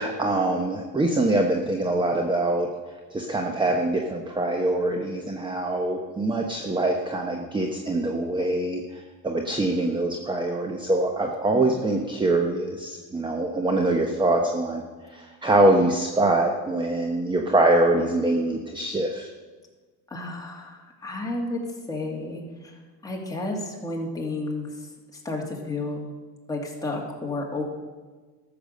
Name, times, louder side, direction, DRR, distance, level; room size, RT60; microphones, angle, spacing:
voice 1, 0.0-2.7 3.1-14.8 15.1-19.3, right 2 dB, 10° right, 3 dB, 1.0 m, -24 dB
voice 2, 20.1-21.6 21.9-22.7 23.0-24.9 25.2-26.1 26.5-27.6, left 2 dB, 10° left, -2 dB, 2.5 m, -32 dB
13.5 x 7.0 x 6.7 m, 1.4 s
cardioid pair, 120°, 41 cm